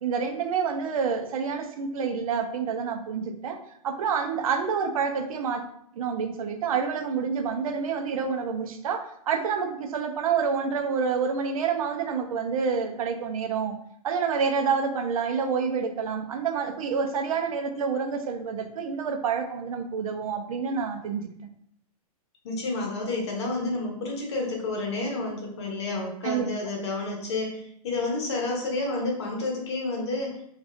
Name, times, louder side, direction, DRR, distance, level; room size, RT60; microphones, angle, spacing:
voice 1, 0.0-3.6 3.8-5.6 6.0-13.8 14.0-21.3 26.2-26.5, right 6 dB, 70° right, 6 dB, 0.5 m, -28 dB
voice 2, 22.4-30.4, left 2 dB, 50° left, 0 dB, 0.9 m, -30 dB
3.5 x 2.4 x 2.5 m, 0.69 s
supercardioid pair, 175°, 19 cm